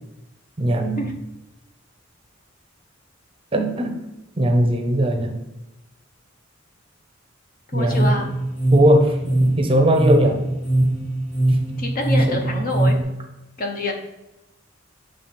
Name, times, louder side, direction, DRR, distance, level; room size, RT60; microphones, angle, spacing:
voice 1, 0.6-1.1 3.5-4.0 4.4-5.3 7.7-8.1 8.7-10.4 12.3-12.6, right 1 dB, 25° right, 3 dB, 0.6 m, -19 dB
voice 2, 7.7-8.3 11.8-13.0 13.6-13.9, left 1 dB, 45° left, 3 dB, 0.8 m, -26 dB
sound 1, 7.8-13.0, right 1 dB, 75° left, 2.0 m, -21 dB
6.7 x 3.3 x 4.3 m, 0.93 s
head